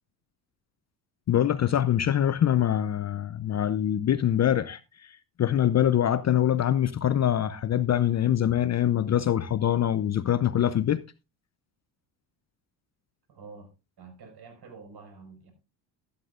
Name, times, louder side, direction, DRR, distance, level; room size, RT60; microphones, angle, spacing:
voice 1, 1.3-4.8 5.4-11.0, left 10 dB, 35° left, 0.6 m, -24 dB
voice 2, 13.3-13.7 14.0-15.5, right 4 dB, 50° right, 5.3 m, -47 dB
13.0 x 12.0 x 2.5 m
supercardioid pair, 75°, 50 cm